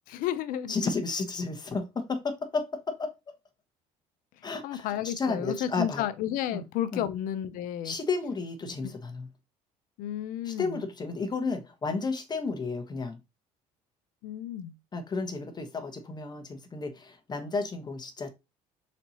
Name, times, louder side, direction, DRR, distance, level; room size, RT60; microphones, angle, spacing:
voice 1, 0.1-0.8 4.6-8.0 8.6-8.9 10.0-10.8 14.2-14.7, left 11 dB, 70° left, 0.6 m, -32 dB
voice 2, 0.7-3.1 4.4-6.0 6.5-6.6 6.9-7.1 7.8-9.3 10.4-13.2 14.9-18.3, left 4 dB, 30° left, 1.0 m, -32 dB
4.4 x 4.1 x 2.8 m
supercardioid pair, 90°, 15 cm